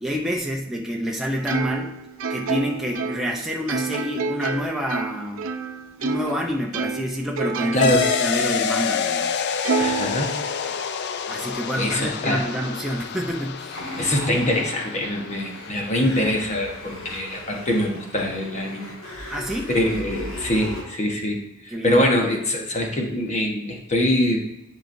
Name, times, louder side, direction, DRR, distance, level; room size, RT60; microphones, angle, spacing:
voice 1, 0.0-1.9 2.3-5.5 6.0-7.9 8.2-9.4 11.3-13.8 19.3-19.7 21.7-22.3, equal, ahead, -2 dB, 0.5 m, -28 dB
Plucked string instrument, 1.5-6.4 6.7-8.5 8.9-9.0 9.7-10.8, right 4 dB, 80° right, 0.7 m, -28 dB
voice 2, 7.7-8.1 9.8-10.3 11.7-12.4 14.0-18.9 19.7-24.4, left 1 dB, 35° left, 1 dB, 1.1 m, -24 dB
sound 1, 7.8-16.8, left 5 dB, 55° left, 0.4 m, -28 dB
sound 2, 13.7-20.8, left 1 dB, 75° left, 2.0 m, -37 dB
10.5 x 5.1 x 2.6 m, 0.91 s
head